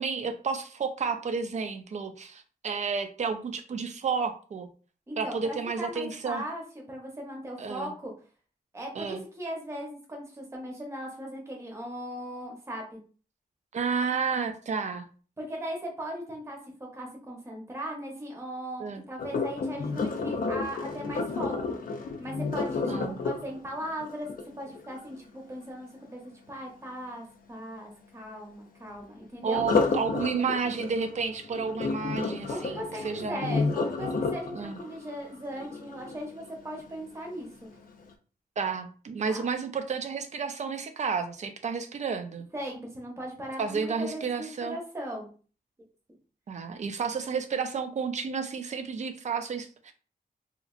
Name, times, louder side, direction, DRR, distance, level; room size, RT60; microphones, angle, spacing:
voice 1, 0.0-4.7 5.2-6.4 7.6-7.9 9.0-9.2 13.7-15.1 18.8-19.0 22.9-23.2 29.4-32.8 33.0-33.5 34.5-34.8 38.6-42.5 43.6-44.8 46.5-49.9, right 5 dB, 45° right, 8 dB, 0.4 m, -31 dB
voice 2, 5.1-6.6 6.9-8.1 8.7-13.0 15.4-16.6 16.9-21.8 22.2-24.3 24.6-26.2 26.5-29.6 32.4-37.7 39.2-39.4 42.5-45.3, equal, 15° right, 0 dB, 0.7 m, -38 dB
Sink (filling or washing), 19.2-25.1 29.5-36.6 37.1-37.4 37.9-38.0, left 4 dB, 60° left, 0.4 m, -31 dB
2.8 x 2.4 x 2.4 m, 0.39 s
wide cardioid pair, 180°, 16 cm